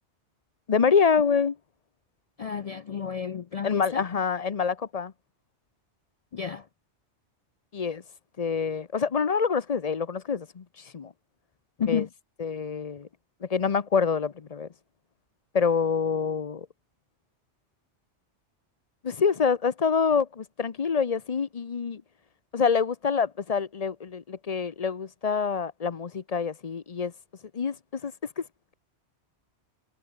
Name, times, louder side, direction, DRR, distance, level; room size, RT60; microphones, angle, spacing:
voice 1, 0.7-1.6 3.6-5.1 7.7-8.0 8.4-10.6 10.9-11.1 11.9-12.0 12.4-13.1 13.4-14.7 15.5-16.7 19.0-22.0 22.5-27.1 27.5-28.4, left 6 dB, 40° left, 0.7 m, -26 dB
voice 2, 2.4-4.0 6.3-6.7 11.8-12.1, left 7 dB, 60° left, 0.4 m, -31 dB
omnidirectional pair, 1.2 m